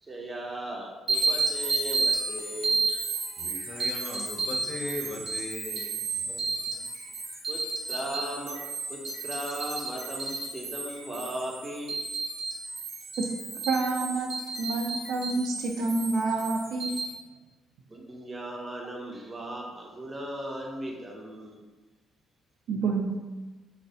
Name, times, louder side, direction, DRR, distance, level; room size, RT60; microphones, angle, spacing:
voice 1, 0.0-2.8 3.7-3.9 7.5-7.6 7.9-8.6 8.9-12.0 17.9-21.6, right 1 dB, 20° right, -1 dB, 0.5 m, -37 dB
sound 1, 1.1-17.1, right 3 dB, 70° right, 0.8 m, -32 dB
voice 2, 3.4-5.9 6.3-6.4 6.7-6.8, left 2 dB, 45° left, -1 dB, 0.5 m, -38 dB
voice 3, 13.7-14.3 14.6-17.0 22.7-23.2, right 3 dB, 85° right, 1 dB, 0.3 m, -28 dB
2.3 x 2.0 x 2.7 m, 1.2 s
cardioid pair, 100°, 0 cm